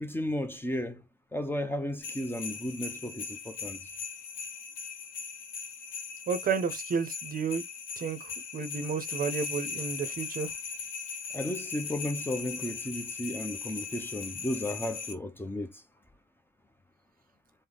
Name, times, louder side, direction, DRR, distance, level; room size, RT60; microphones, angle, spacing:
voice 1, 0.0-1.0 1.3-3.8 11.3-15.7, left 1 dB, 10° left, 0.6 m, -34 dB
sound 1, 2.0-15.1, left 5 dB, 85° left, 0.7 m, -39 dB
voice 2, 6.3-7.6 8.0-10.5, right 5 dB, 45° right, 0.6 m, -31 dB
3.3 x 2.1 x 3.8 m
cardioid pair, 90°, 20 cm